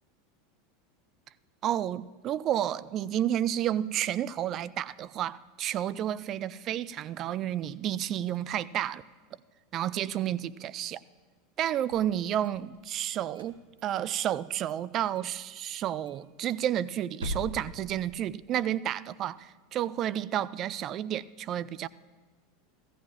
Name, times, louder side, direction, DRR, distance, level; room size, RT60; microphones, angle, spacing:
voice 1, 1.6-9.0 9.7-11.0 11.6-21.9, right 11 dB, 40° right, 19 dB, 0.4 m, -31 dB
sound 1, 11.8-12.9 13.3-14.4 14.7-14.8 15.2-15.3 15.6-15.7 16.1-18.6, equal, 90° right, 1.0 m, -42 dB
16.0 x 15.0 x 3.0 m, 1.4 s
hypercardioid pair, 90°, 0 cm